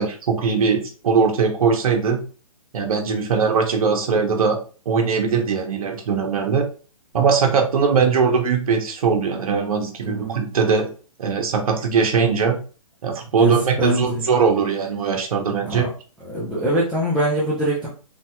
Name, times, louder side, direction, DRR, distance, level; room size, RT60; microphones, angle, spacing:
voice 1, 0.0-2.2 2.7-4.6 4.8-6.6 7.1-10.9 11.2-12.6 13.0-15.9, right 5 dB, 65° right, 2 dB, 1.0 m, -20 dB
voice 2, 13.4-14.2 15.6-15.9 16.3-17.9, right 1 dB, 5° left, -8 dB, 0.8 m, -23 dB
3.3 x 2.8 x 2.3 m, 0.38 s
hypercardioid pair, 130°, 19 cm